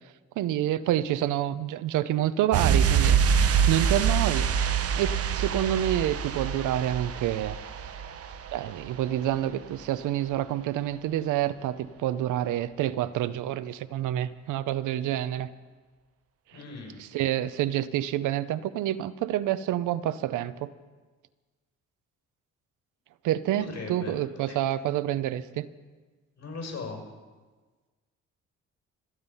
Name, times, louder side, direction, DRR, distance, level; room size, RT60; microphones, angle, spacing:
voice 1, 0.4-3.2 3.7-4.5 5.0-7.6 8.5-15.5 16.5-16.6 17.0-20.7 23.2-25.7, right 12 dB, 85° right, 14 dB, 0.7 m, -28 dB
sound 1, 2.5-9.0 9.3-9.4, right 7 dB, 50° right, 1.0 m, -25 dB
voice 2, 16.5-17.0 23.6-24.1 24.4-24.6 26.4-27.0, left 4 dB, 60° left, 1 dB, 6.0 m, -38 dB
26.0 x 8.9 x 5.6 m, 1.3 s
cardioid pair, 90°, 30 cm